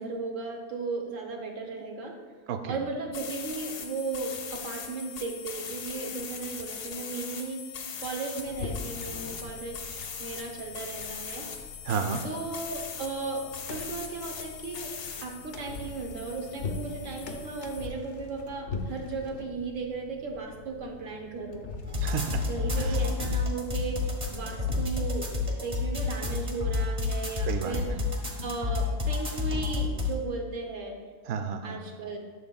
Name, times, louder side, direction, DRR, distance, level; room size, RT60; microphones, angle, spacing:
voice 1, 0.0-2.2 2.7-7.6 8.0-11.5 12.2-14.9 15.2-21.7 22.5-25.3 25.6-27.9 28.4-31.0 31.6-32.2, right 4 dB, 55° right, 2 dB, 1.2 m, -36 dB
voice 2, 2.5-2.8 11.8-12.2 22.0-22.5 22.8-23.0 27.4-27.8 31.3-31.8, right 6 dB, 85° right, 7 dB, 0.5 m, -31 dB
sound 1, 3.1-17.9, left 7 dB, 85° left, 1.4 m, -40 dB
sound 2, 8.4-22.1, left 4 dB, 60° left, 0.8 m, -42 dB
sound 3, 21.8-30.1, left 4 dB, 25° right, 1.1 m, -29 dB
11.0 x 6.7 x 2.3 m, 1.5 s
omnidirectional pair, 1.7 m